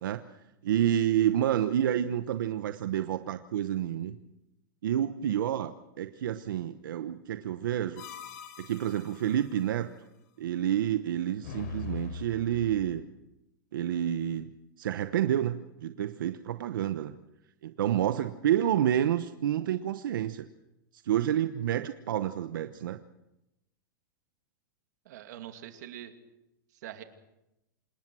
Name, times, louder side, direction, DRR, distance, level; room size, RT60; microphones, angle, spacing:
voice 1, 0.6-4.2 4.8-8.0 8.6-9.9 10.4-13.0 13.7-14.5 14.8-17.1 17.6-20.4 20.9-23.0, right 11 dB, 80° right, 9 dB, 1.1 m, -29 dB
sound 1, 8.0-9.6 11.4-13.0, left 5 dB, 55° left, 3.9 m, -42 dB
voice 2, 25.0-26.1 26.8-27.0, right 12 dB, 60° right, 6 dB, 2.5 m, -43 dB
27.5 x 19.0 x 6.3 m, 0.92 s
supercardioid pair, 170°, 11 cm